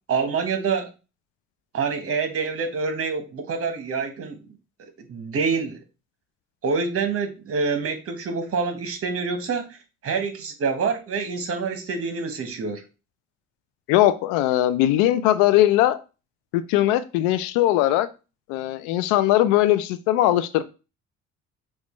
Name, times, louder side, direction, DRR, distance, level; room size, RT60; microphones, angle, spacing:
voice 1, 0.1-0.9 1.7-4.4 5.0-5.8 6.6-12.8, right 5 dB, 50° right, 7 dB, 1.1 m, -26 dB
voice 2, 13.9-16.0 16.5-18.1 18.5-20.6, left 14 dB, 90° left, 13 dB, 0.5 m, -20 dB
6.2 x 2.4 x 3.1 m, 0.30 s
supercardioid pair, 75°, 29 cm